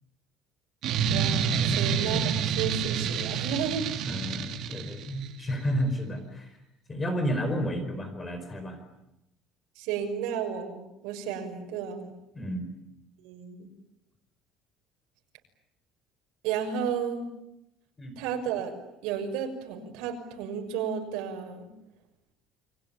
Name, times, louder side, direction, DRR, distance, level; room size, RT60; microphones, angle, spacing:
sound 1, 0.8-5.3, right 7 dB, 50° right, 2.9 m, -28 dB
voice 1, 1.1-4.0 9.8-12.1 13.2-13.7 16.4-17.2 18.2-18.7 19.0-21.7, right 7 dB, 80° right, 4 dB, 6.2 m, -33 dB
voice 2, 4.0-6.6 6.9-8.8 12.3-12.7 18.0-18.2, equal, 15° left, 8 dB, 4.9 m, -31 dB
29.5 x 22.5 x 8.8 m, 0.87 s
cardioid pair, 170°, 0 cm